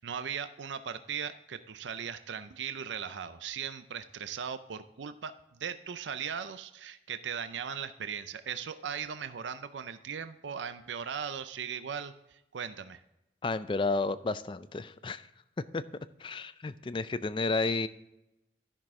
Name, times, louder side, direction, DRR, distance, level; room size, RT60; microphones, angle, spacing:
voice 1, 0.0-5.3 5.6-13.0, right 7 dB, 85° right, 11 dB, 0.5 m, -38 dB
voice 2, 13.4-15.2 15.7-15.8 16.2-17.9, left 3 dB, 25° left, 14 dB, 0.4 m, -31 dB
13.0 x 6.1 x 3.6 m, 0.92 s
head